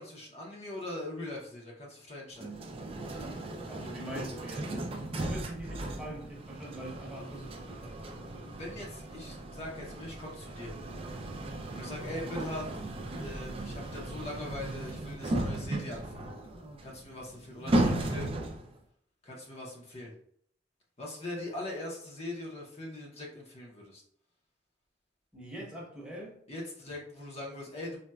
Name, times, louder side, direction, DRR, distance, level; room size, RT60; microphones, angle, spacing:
voice 1, 0.0-2.5 8.5-10.7 11.7-12.7 13.2-16.3 16.8-18.3 19.2-20.1 21.0-24.0 26.5-28.0, left 1 dB, 35° left, -2 dB, 0.6 m, -41 dB
sound 1, 2.4-18.8, right 1 dB, 35° right, 0.4 m, -36 dB
voice 2, 3.6-8.2 25.3-26.4, right 1 dB, 5° right, -4 dB, 0.8 m, -43 dB
4.0 x 2.1 x 2.2 m, 0.66 s
head